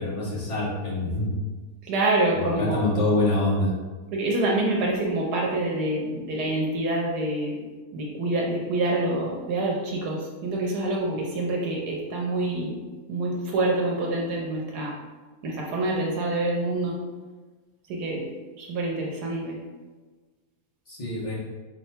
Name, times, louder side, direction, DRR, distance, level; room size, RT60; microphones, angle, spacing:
voice 1, 0.0-1.3 2.3-3.7 20.9-21.4, left 2 dB, 25° left, -7 dB, 1.0 m, -25 dB
voice 2, 1.8-2.8 4.1-7.7 7.9-12.8 13.1-15.0 15.4-17.0 17.9-18.3 18.6-19.6, right 2 dB, 80° right, -2 dB, 1.2 m, -26 dB
4.5 x 2.2 x 4.3 m, 1.3 s
omnidirectional pair, 1.7 m